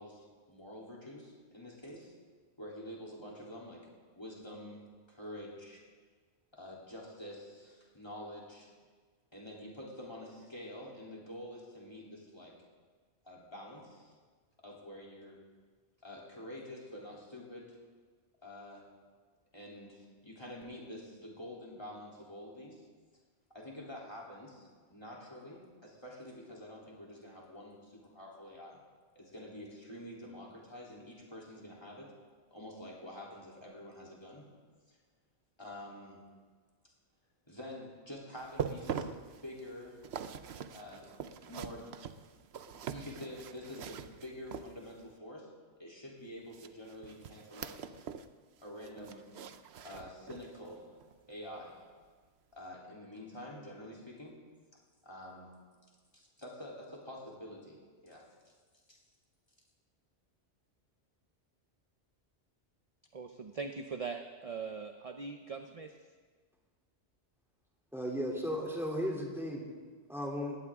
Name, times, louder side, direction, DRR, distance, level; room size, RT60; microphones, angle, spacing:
voice 1, 0.0-2.1 2.6-3.9 4.2-5.8 6.5-8.7 9.3-12.6 13.2-14.1 14.6-15.4 16.0-17.8 18.4-18.9 19.5-22.8 23.5-28.8 29.2-32.1 32.5-34.5 34.9-35.0 35.6-36.2 37.5-40.0 40.7-41.1 41.4-41.9 42.7-45.5 45.8-47.8 48.6-49.3 49.8-50.9 51.3-51.8 52.5-54.3 55.0-55.5 56.1-58.5 58.9-59.0, left 1 dB, 20° left, -4 dB, 3.4 m, -47 dB
sound 1, 38.4-45.1 46.5-48.3 48.6-50.6 51.0-51.2 51.7-51.8, right 7 dB, 70° right, 0.9 m, -43 dB
voice 2, 63.1-65.9, right 5 dB, 35° right, 6 dB, 0.7 m, -41 dB
voice 3, 67.9-69.6 70.1-70.6, equal, ahead, -2 dB, 3.0 m, -35 dB
20.0 x 17.5 x 3.7 m, 1.5 s
omnidirectional pair, 1.2 m